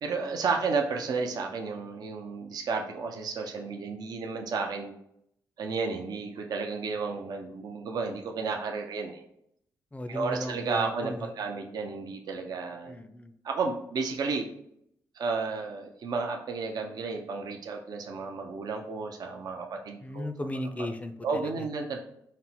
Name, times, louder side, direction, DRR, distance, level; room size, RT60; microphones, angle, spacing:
voice 1, 0.0-4.9 5.6-9.2 10.1-13.0 13.4-14.5 15.1-20.3 20.8-20.9 21.2-22.0, right 4 dB, 65° right, 2 dB, 0.5 m, -32 dB
voice 2, 9.9-11.3 12.9-13.3 20.0-21.7, left 1 dB, 20° left, 9 dB, 0.4 m, -36 dB
4.1 x 2.0 x 4.2 m, 0.74 s
supercardioid pair, 60°, 7 cm